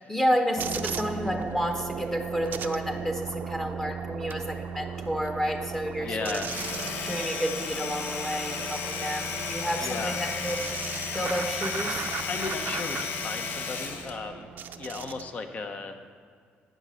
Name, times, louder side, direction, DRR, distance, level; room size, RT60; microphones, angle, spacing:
voice 1, 0.1-6.4 7.0-10.6 11.1-12.1, equal, 10° left, 5 dB, 1.0 m, -30 dB
sound 1, 0.6-15.3, right 7 dB, 55° right, 0.6 m, -37 dB
voice 2, 6.0-6.5 9.8-10.2 12.3-16.0, left 4 dB, 40° left, 7 dB, 0.9 m, -35 dB
Domestic sounds home sounds, 6.3-14.2, left 5 dB, 70° left, 1.1 m, -33 dB
11.0 x 9.2 x 5.6 m, 2.2 s
cardioid pair, 135°, 4 cm